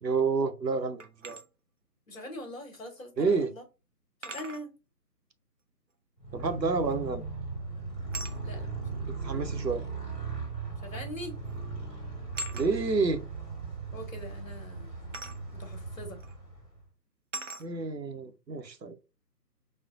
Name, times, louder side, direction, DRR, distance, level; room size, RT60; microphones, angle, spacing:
voice 1, 0.0-1.4 3.2-3.5 6.3-7.3 9.1-9.8 12.5-13.2 17.6-19.0, right 4 dB, 85° right, 0.8 m, -29 dB
sound 1, 1.0-1.5 3.0-3.1 4.2-4.7 6.9-7.2 8.1-8.4 9.6-9.7 10.9-11.2 11.4-11.7 12.3-12.7 15.1-15.4 16.2-16.3 17.3-17.7, right 2 dB, 50° right, 0.5 m, -40 dB
voice 2, 2.1-3.6 4.2-4.7 8.4-9.2 10.8-11.4 13.9-15.2 15.5-16.2, left 1 dB, 55° left, 1.2 m, -43 dB
Motorcycle, 6.2-16.8, right 4 dB, 5° right, 1.3 m, -38 dB
4.3 x 2.2 x 2.4 m
figure-of-eight pair, 150°, 49 cm